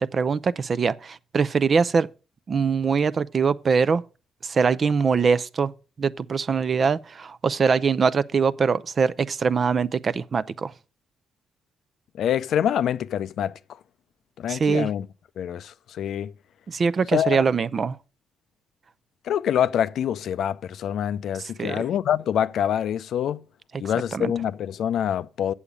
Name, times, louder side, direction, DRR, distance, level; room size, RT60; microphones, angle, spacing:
voice 1, 0.0-2.1 2.5-4.0 4.4-5.7 6.0-10.7 14.5-14.9 16.7-18.0 21.6-21.8 24.1-24.3, right 5 dB, 45° right, 0.5 m, -23 dB
voice 2, 12.2-13.5 14.4-15.1 15.4-16.3 17.1-17.4 19.2-23.4 23.8-25.5, left 9 dB, 70° left, 0.4 m, -25 dB
8.3 x 7.1 x 5.0 m
cardioid pair, 90°, 0 cm